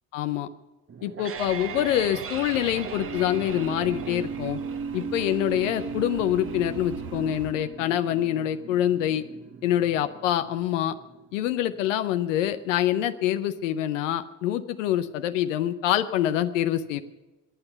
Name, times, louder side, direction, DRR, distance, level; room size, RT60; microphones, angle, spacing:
voice 1, 0.1-0.5 1.0-4.6 4.9-9.2 9.6-10.9 11.3-17.0, left 11 dB, 85° left, 10 dB, 0.7 m, -25 dB
sound 1, 0.9-11.9, right 6 dB, 35° right, 1.1 m, -37 dB
sound 2, 1.3-7.5, right 5 dB, 70° right, 1.7 m, -44 dB
14.5 x 9.8 x 8.0 m, 1.1 s
hypercardioid pair, 50°, 37 cm